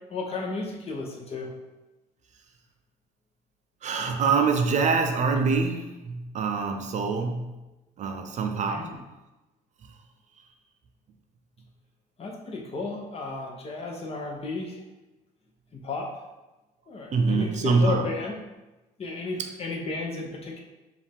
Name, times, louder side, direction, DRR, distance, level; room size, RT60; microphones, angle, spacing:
voice 1, 0.1-1.5 8.7-9.0 12.2-14.8 15.7-16.1 16.9-18.4 19.0-20.6, left 3 dB, 35° left, -1 dB, 0.9 m, -33 dB
voice 2, 3.8-7.6 8.0-9.0 17.1-18.1, right 4 dB, 45° right, 5 dB, 0.5 m, -25 dB
4.9 x 2.5 x 3.5 m, 1.0 s
cardioid pair, 110°, 17 cm